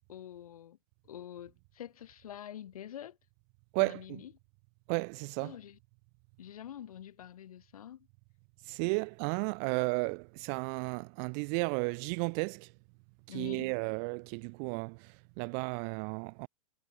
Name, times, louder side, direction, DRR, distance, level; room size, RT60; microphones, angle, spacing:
voice 1, 0.1-0.8 1.0-3.2 3.8-4.3 5.4-5.8 6.4-8.1 13.3-13.7, left 10 dB, 75° left, 6.9 m, -46 dB
voice 2, 3.7-4.2 4.9-5.5 8.7-12.7 13.3-16.5, right 40 dB or more, 30° right, 0.4 m, -33 dB
hypercardioid pair, 150°, 18 cm